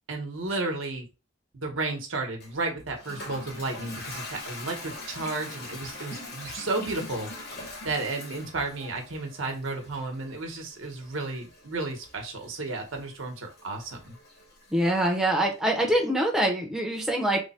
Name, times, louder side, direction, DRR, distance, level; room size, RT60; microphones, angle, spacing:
voice 1, 0.1-1.1 1.5-7.3 7.8-14.2, right 3 dB, 70° right, 2 dB, 0.9 m, -33 dB
Toilet flush, 2.4-15.2, left 2 dB, 55° left, 1.1 m, -43 dB
voice 2, 14.7-17.4, right 1 dB, 5° right, 0 dB, 0.6 m, -24 dB
3.2 x 2.1 x 4.1 m, 0.29 s
head